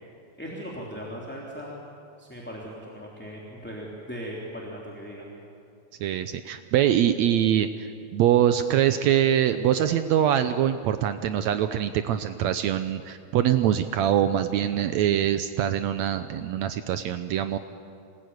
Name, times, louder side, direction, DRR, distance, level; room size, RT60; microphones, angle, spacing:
voice 1, 0.4-1.8 2.2-5.3, equal, 5° left, -3 dB, 2.9 m, -38 dB
voice 2, 6.0-17.6, right 10 dB, 75° right, 10 dB, 1.9 m, -23 dB
26.5 x 20.0 x 9.6 m, 2.4 s
omnidirectional pair, 3.4 m